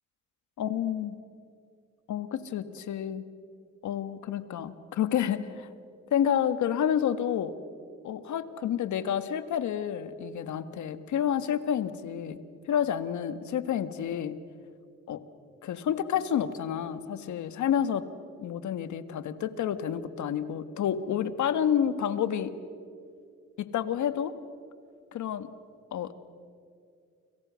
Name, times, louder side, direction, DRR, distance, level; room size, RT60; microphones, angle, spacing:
voice 1, 0.6-1.2 2.1-3.2 3.8-5.7 6.1-7.5 8.0-12.4 12.7-14.4 15.1-15.2 15.6-18.0 18.4-22.5 23.6-24.3 25.1-25.5 25.9-26.1, left 9 dB, 75° left, 12 dB, 1.6 m, -29 dB
29.5 x 26.0 x 6.4 m, 2.4 s
cardioid pair, 90°, 30 cm